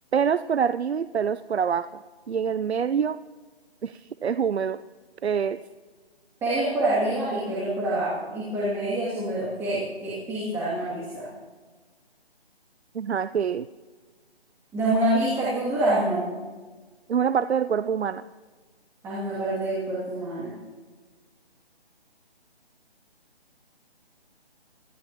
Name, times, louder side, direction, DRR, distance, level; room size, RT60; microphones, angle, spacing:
voice 1, 0.1-1.9 2.3-3.2 3.8-4.8 5.2-5.6 12.9-13.6 17.1-18.2, right 7 dB, 90° right, 13 dB, 0.6 m, -25 dB
voice 2, 6.4-11.3 14.7-16.3 19.0-20.5, right 1 dB, 10° right, -9 dB, 2.7 m, -26 dB
25.5 x 14.0 x 3.0 m, 1.4 s
hypercardioid pair, 160°, 31 cm